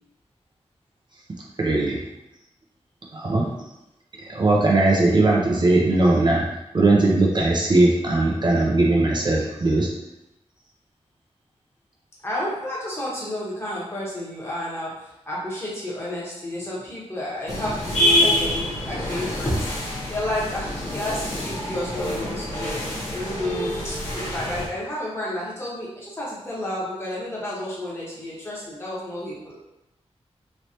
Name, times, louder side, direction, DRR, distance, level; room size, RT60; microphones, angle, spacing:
voice 1, 1.6-2.0 3.1-3.5 4.3-6.4 6.7-9.9, right 2 dB, 40° right, -2 dB, 0.5 m, -19 dB
voice 2, 12.2-22.8 23.1-29.6, left 1 dB, 20° left, -7 dB, 1.1 m, -31 dB
sound 1, 17.5-24.7, left 1 dB, 85° left, 1.3 m, -26 dB
3.2 x 3.1 x 2.7 m, 0.91 s
wide cardioid pair, 125°, 11 cm